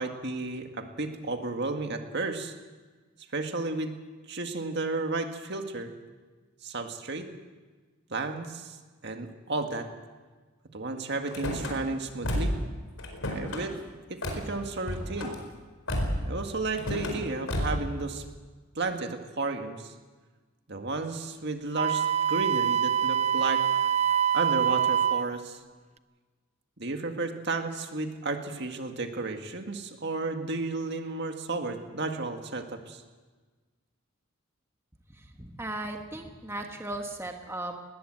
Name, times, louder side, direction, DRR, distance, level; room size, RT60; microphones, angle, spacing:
voice 1, 0.0-2.5 3.3-3.9 4.3-5.9 6.6-7.3 8.1-8.8 9.0-9.9 10.7-12.5 13.3-13.8 14.1-15.4 16.2-18.2 18.8-19.9 20.7-23.6 24.3-25.6 26.8-33.0, right 3 dB, 55° right, 5 dB, 1.9 m, -33 dB
Car / Slam, 11.3-11.7 12.2-12.7 13.0-13.6 14.2-14.4 14.8-15.4 15.9-16.3 16.7-17.2 17.5-17.9, equal, 80° left, 4.7 m, -30 dB
Wind instrument woodwind instrument, 21.8-25.3, right 9 dB, 30° right, 0.5 m, -25 dB
voice 2, 35.2-37.7, right 1 dB, 10° right, 3 dB, 1.4 m, -37 dB
20.0 x 19.0 x 7.8 m, 1.4 s
head